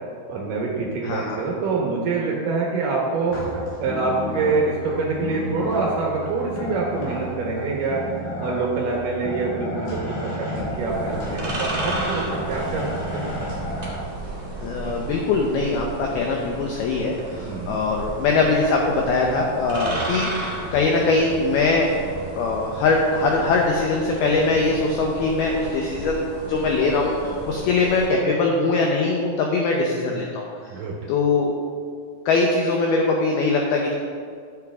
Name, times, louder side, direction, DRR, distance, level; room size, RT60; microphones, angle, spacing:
voice 1, 0.3-3.4 3.8-8.0 8.4-12.8 13.1-13.3 17.4-17.8 19.8-20.0 30.7-31.0, right 3 dB, 75° right, -3 dB, 2.0 m, -25 dB
voice 2, 1.0-1.5 14.6-21.9 22.4-30.7 31.1-31.5 32.3-34.0, left 3 dB, 85° left, 0 dB, 2.2 m, -22 dB
sound 1, 3.3-14.0, equal, 55° left, 3.8 m, -32 dB
sound 2, 10.6-28.1, right 2 dB, 30° right, 1.3 m, -34 dB
13.5 x 8.2 x 3.6 m, 2.1 s
omnidirectional pair, 5.6 m